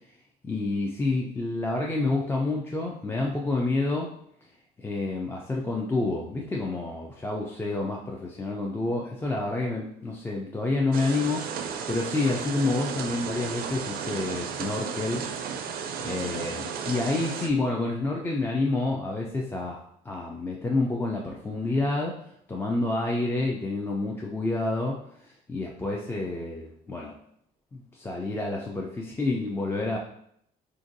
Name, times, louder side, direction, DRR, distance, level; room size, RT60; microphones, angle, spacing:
voice 1, 0.4-4.1 4.8-11.5 11.9-15.2 15.5-22.2 22.5-27.2 27.7-30.0, left 2 dB, 15° left, -1 dB, 0.3 m, -29 dB
sound 1, 10.9-17.5, right 7 dB, 60° right, 0.4 m, -34 dB
3.7 x 2.5 x 2.5 m, 0.70 s
cardioid pair, 110°, 17 cm